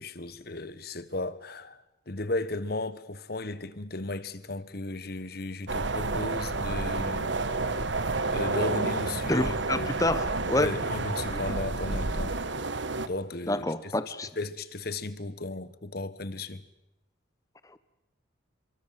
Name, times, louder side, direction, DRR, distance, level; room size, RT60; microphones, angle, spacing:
voice 1, 0.0-7.4 8.3-10.0 10.5-12.4 13.0-16.6, left 2 dB, 50° left, 1.3 m, -35 dB
sound 1, 5.7-13.1, right 3 dB, 65° right, 1.3 m, -30 dB
voice 2, 9.3-10.7 11.3-11.6 13.5-14.3, left 1 dB, 15° left, 1.2 m, -28 dB
28.0 x 24.0 x 7.7 m
head